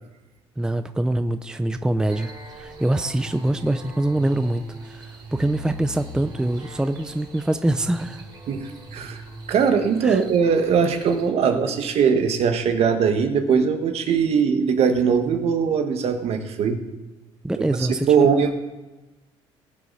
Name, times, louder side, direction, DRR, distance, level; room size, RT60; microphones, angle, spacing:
voice 1, 0.6-8.3 10.0-10.2 17.4-18.3, right 1 dB, 5° right, 10 dB, 0.6 m, -24 dB
sound 1, 2.1-11.3, right 2 dB, 40° right, 3.2 m, -40 dB
voice 2, 8.5-9.2 9.5-16.8 17.6-18.5, right 6 dB, 60° right, 6 dB, 1.7 m, -21 dB
20.0 x 8.2 x 4.1 m, 1.1 s
cardioid pair, 95°, 12 cm